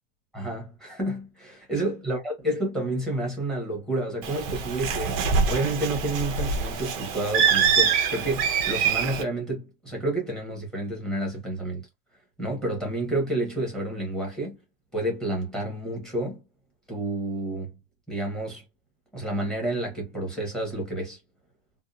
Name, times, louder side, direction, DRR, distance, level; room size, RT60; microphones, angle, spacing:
voice 1, 0.3-11.9 12.4-14.6 14.9-16.4 16.9-17.7 18.1-18.6 19.1-21.2, right 1 dB, ahead, 0.9 m, -30 dB
Bird, 4.2-9.2, right 6 dB, 30° right, 0.4 m, -25 dB
2.7 x 2.2 x 2.3 m
supercardioid pair, 175°, 30 cm